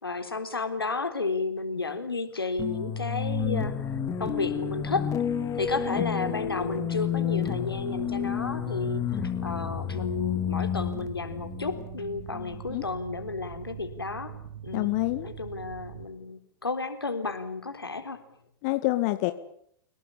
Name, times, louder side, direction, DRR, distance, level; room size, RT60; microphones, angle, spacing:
voice 1, 0.0-5.1 5.6-14.3 14.6-14.9 15.2-18.2, left 3 dB, 85° left, 8 dB, 3.8 m, -32 dB
sound 1, 2.6-12.5, left 9 dB, 25° left, 2.6 m, -31 dB
Mechanical fan, 3.3-16.1, right 9 dB, 60° right, 1.9 m, -43 dB
voice 2, 12.3-12.8 14.7-15.3 18.6-19.3, left 20 dB, 45° left, 9 dB, 1.9 m, -27 dB
30.0 x 18.0 x 8.7 m, 0.69 s
figure-of-eight pair, 95°, 12 cm